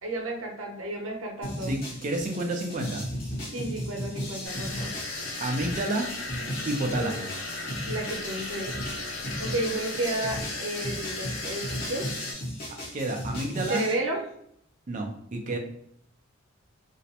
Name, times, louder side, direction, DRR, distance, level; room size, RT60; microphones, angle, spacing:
voice 1, 0.0-1.7 3.5-4.9 6.9-7.1 7.9-8.8 9.2-12.1 13.7-14.2, right 1 dB, 80° right, 0 dB, 0.7 m, -32 dB
sound 1, 1.4-13.9, equal, 45° left, 0.8 m, -36 dB
voice 2, 1.6-3.0 5.4-6.1 6.7-7.3 12.9-13.8 14.9-15.6, right 2 dB, 40° right, 3 dB, 0.4 m, -30 dB
sound 2, 4.4-12.3, left 2 dB, 80° left, 0.6 m, -36 dB
2.4 x 2.0 x 2.8 m, 0.71 s
head